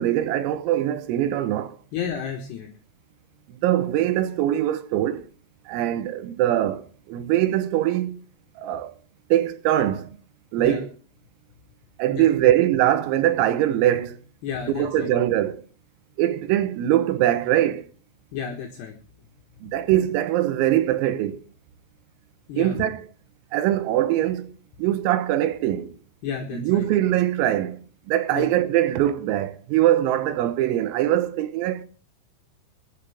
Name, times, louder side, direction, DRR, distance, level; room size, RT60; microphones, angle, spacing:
voice 1, 0.0-1.8 3.5-5.3 5.7-8.2 8.6-8.9 9.3-10.2 10.5-10.9 12.0-14.2 14.8-15.6 16.2-17.9 19.6-21.4 22.6-23.1 23.5-24.5 24.8-25.9 26.5-27.8 28.1-31.8, right 12 dB, 90° right, 3.9 m, -22 dB
voice 2, 1.9-2.7 10.6-10.8 12.1-12.5 14.4-15.1 18.3-18.9 19.6-19.7 22.5-22.8 26.2-26.9 28.3-28.5, left 7 dB, 65° left, 3.2 m, -32 dB
26.0 x 11.0 x 3.6 m
omnidirectional pair, 5.9 m